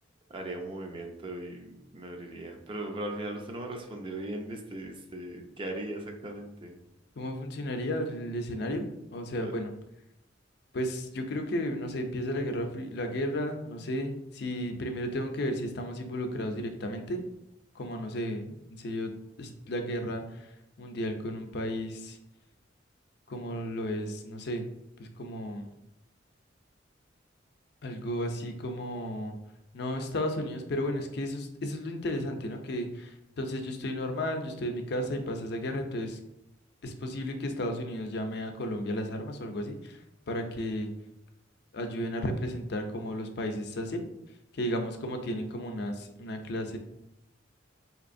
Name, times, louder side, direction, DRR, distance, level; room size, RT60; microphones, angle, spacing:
voice 1, 0.3-6.8 9.4-9.5, right 1 dB, 30° right, 3 dB, 0.5 m, -38 dB
voice 2, 7.2-9.7 10.7-17.2 17.7-19.1 19.4-22.2 23.3-24.7 25.0-25.7 27.8-29.4 29.7-36.2 36.8-40.9 41.7-44.0 44.5-46.8, equal, 60° left, 5 dB, 0.5 m, -33 dB
4.0 x 2.9 x 2.6 m, 0.86 s
head